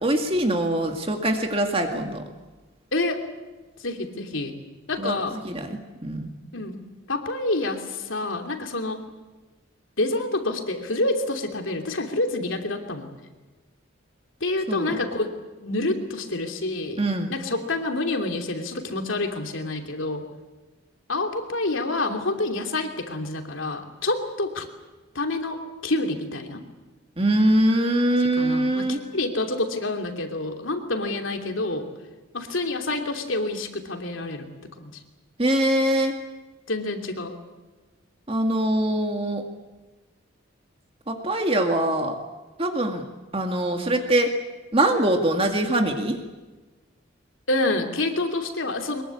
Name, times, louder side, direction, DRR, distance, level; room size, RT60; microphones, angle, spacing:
voice 1, 0.0-2.2 5.0-5.2 5.4-6.4 14.7-15.0 17.0-17.4 27.2-29.0 35.4-36.1 38.3-39.4 41.1-42.2 42.6-43.0 43.3-44.3 44.7-46.2, right 1 dB, 30° right, 4 dB, 2.0 m, -23 dB
voice 2, 2.9-3.2 3.8-4.5 4.9-5.4 6.5-6.8 7.1-9.0 10.0-13.1 14.4-15.3 15.6-17.0 17.3-20.2 21.1-24.7 25.1-26.6 28.4-31.9 32.3-34.5 34.8-34.9 36.7-37.3 47.5-49.0, left 2 dB, 75° left, 4 dB, 3.0 m, -27 dB
23.5 x 22.0 x 8.5 m, 1.2 s
head